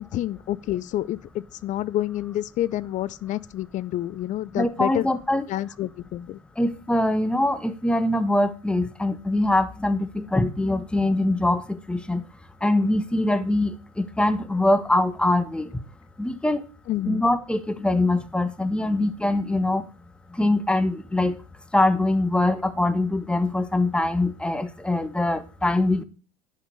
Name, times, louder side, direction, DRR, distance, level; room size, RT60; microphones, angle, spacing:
voice 1, 0.0-5.1 5.5-6.4 16.9-17.2, left 13 dB, 40° left, 0.6 m, -28 dB
voice 2, 4.5-5.5 6.6-12.2 12.6-15.7 16.2-16.6 17.1-19.8 20.4-21.3 21.7-26.0, left 1 dB, 5° left, 1.1 m, -23 dB
11.0 x 5.3 x 5.3 m
hypercardioid pair, 80°, 19 cm